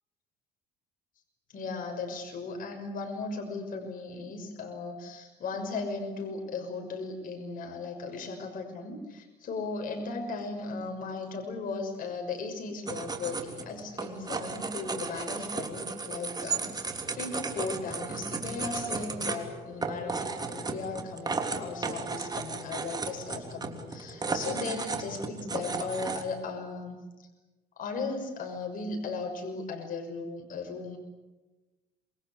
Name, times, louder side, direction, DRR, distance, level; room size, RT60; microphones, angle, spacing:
voice 1, 1.5-27.0 27.8-31.0, left 3 dB, 55° left, 3 dB, 6.3 m, -37 dB
sound 1, 12.9-26.2, right 4 dB, 25° right, 3.3 m, -35 dB
27.5 x 23.5 x 8.3 m, 1.1 s
cardioid pair, 110°, 17 cm